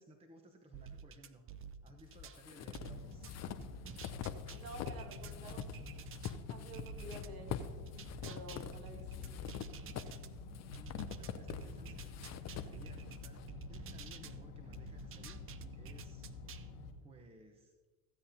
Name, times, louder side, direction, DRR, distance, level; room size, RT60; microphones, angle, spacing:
voice 1, 0.0-1.4 1.8-3.3 10.7-15.4 15.8-16.3 17.0-17.7, right 2 dB, 10° right, 5 dB, 0.9 m, -59 dB
sound 1, 0.7-2.4 2.7-6.4 6.7-10.3 10.7-14.4 14.7-16.7, right 8 dB, 25° right, 0.5 m, -51 dB
sound 2, 2.0-5.0 5.3-13.5, left 9 dB, 35° left, 0.7 m, -45 dB
sound 3, 2.8-16.9, left 4 dB, 80° left, 1.4 m, -49 dB
voice 2, 4.5-5.8 6.5-7.7 8.2-9.3, right 2 dB, 45° right, 2 dB, 2.3 m, -50 dB
15.5 x 8.4 x 2.8 m, 1.3 s
hypercardioid pair, 85°, 49 cm